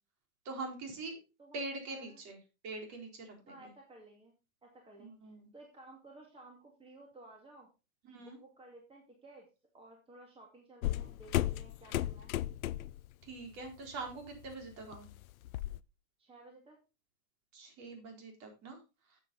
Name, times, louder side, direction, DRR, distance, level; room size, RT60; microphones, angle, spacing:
voice 1, 0.4-1.2 1.5-2.4 2.6-3.7 5.0-5.5 8.0-8.4 13.2-15.1 17.5-18.8, right 3 dB, 40° right, 3 dB, 4.2 m, -43 dB
voice 2, 1.4-2.2 3.5-4.3 4.6-7.7 8.2-9.5 9.7-12.3 16.2-16.8, right 2 dB, 15° right, 1 dB, 2.3 m, -56 dB
sound 1, 10.8-13.1 13.4-13.7 14.1-15.8, left 14 dB, 80° left, 0.6 m, -35 dB
10.5 x 7.6 x 4.1 m, 0.29 s
hypercardioid pair, 120°, 41 cm